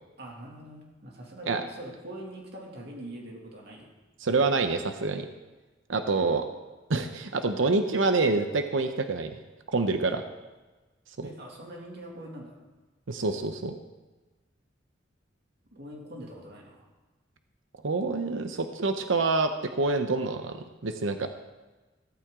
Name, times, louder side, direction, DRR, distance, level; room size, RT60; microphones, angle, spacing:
voice 1, 0.2-3.9 11.2-12.6 15.7-16.9, right 1 dB, 60° right, -1 dB, 2.4 m, -43 dB
voice 2, 4.2-5.3 5.9-6.5 6.9-9.3 9.7-10.2 11.2-11.3 13.1-13.7 17.8-21.3, right 3 dB, 85° right, 7 dB, 0.8 m, -27 dB
15.0 x 13.5 x 3.7 m, 1.2 s
head